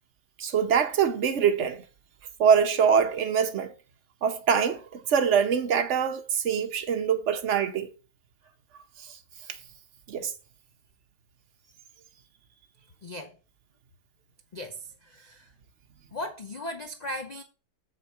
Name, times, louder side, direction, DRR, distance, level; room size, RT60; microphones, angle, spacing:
voice 1, 0.4-1.8 2.4-3.7 4.2-7.9 10.1-10.3, right 7 dB, 50° right, 1.1 m, -24 dB
voice 2, 13.0-13.4 14.5-15.5 16.1-17.4, left 1 dB, 60° left, 0.4 m, -37 dB
6.9 x 6.7 x 4.5 m
omnidirectional pair, 1.9 m